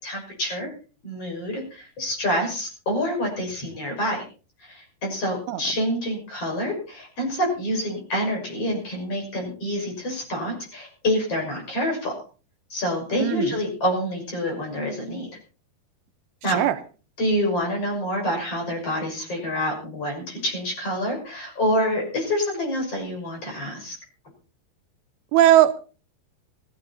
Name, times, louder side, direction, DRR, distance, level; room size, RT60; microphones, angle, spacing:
voice 1, 0.0-0.7 1.0-4.2 4.6-12.1 12.7-15.3 16.4-16.6 17.2-24.0, equal, 35° left, 1 dB, 6.9 m, -27 dB
voice 2, 13.2-13.6 16.5-16.8 25.3-25.8, right 12 dB, 85° right, 10 dB, 3.0 m, -18 dB
17.0 x 14.5 x 4.2 m, 0.37 s
omnidirectional pair, 4.7 m